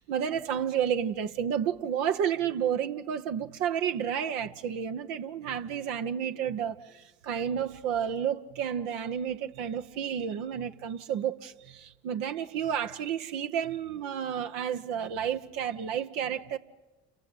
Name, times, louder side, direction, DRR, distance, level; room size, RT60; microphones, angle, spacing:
voice 1, 0.0-16.6, right 8 dB, 75° right, 1.0 m, -31 dB
29.0 x 16.0 x 9.7 m
hypercardioid pair, 50°, 32 cm